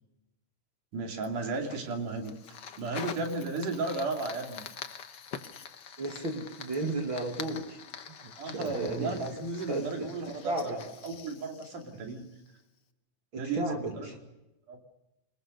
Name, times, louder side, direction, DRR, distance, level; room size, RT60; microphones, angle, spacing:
voice 1, 0.9-2.3 2.8-4.6 8.4-12.3 13.4-14.1 14.7-14.8, right 3 dB, 80° right, 3 dB, 4.3 m, -34 dB
Fire, 1.2-12.6, left 7 dB, 55° left, 1.3 m, -46 dB
voice 2, 6.0-7.8 8.1-10.1 10.4-10.8 11.9-12.0 13.3-14.2, right 2 dB, 40° right, 2 dB, 3.0 m, -34 dB
25.5 x 21.5 x 6.6 m, 0.98 s
omnidirectional pair, 3.6 m